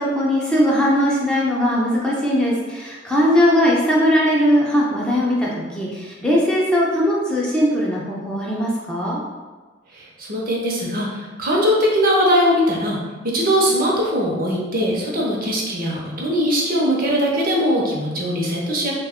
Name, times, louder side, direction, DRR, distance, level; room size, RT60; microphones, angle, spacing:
voice 1, 0.0-9.2, equal, 5° left, -5 dB, 0.4 m, -19 dB
voice 2, 9.9-13.0 13.2-18.9, equal, 50° right, -2 dB, 0.7 m, -20 dB
2.8 x 2.2 x 3.5 m, 1.3 s
head